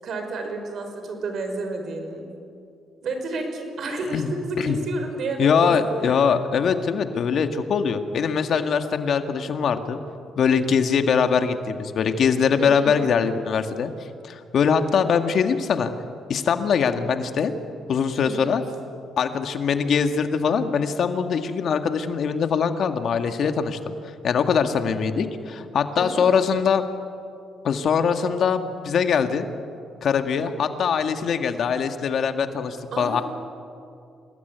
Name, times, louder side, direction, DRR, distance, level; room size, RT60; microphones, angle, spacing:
voice 1, 0.0-2.3 3.0-6.3 12.6-12.9 18.2-18.5 25.9-26.2 32.9-33.2, right 2 dB, 60° right, 5 dB, 5.8 m, -31 dB
voice 2, 4.1-4.8 5.4-10.0 10.4-13.9 14.2-15.9 16.3-17.5 17.9-18.6 19.2-23.9 24.2-26.8 27.6-29.5 30.0-33.2, left 6 dB, 60° left, 7 dB, 1.8 m, -22 dB
27.0 x 20.0 x 9.4 m, 2.5 s
cardioid pair, 90°, 0 cm